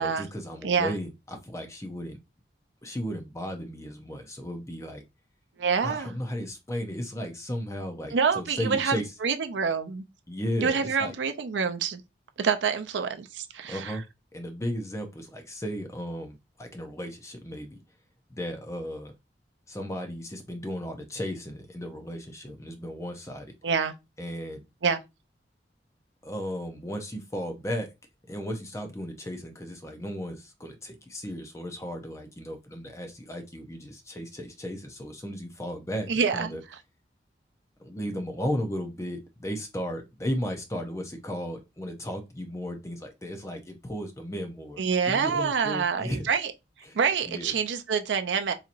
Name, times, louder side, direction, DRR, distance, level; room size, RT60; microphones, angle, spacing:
voice 1, 0.0-2.2 2.8-5.0 5.8-9.1 10.3-11.1 13.7-14.0 14.3-17.8 18.3-19.1 19.7-23.5 24.2-24.6 26.2-27.9 28.3-36.6 37.8-46.3 46.8-47.0 47.3-47.5, equal, 15° left, 0.6 m, -35 dB
voice 2, 0.6-0.9 5.6-6.1 8.1-10.0 10.6-12.0 12.4-14.0 23.6-23.9 24.8-25.0 36.1-36.6 44.8-46.5 46.9-48.5, right 6 dB, 90° right, 0.5 m, -26 dB
4.2 x 2.8 x 2.5 m
head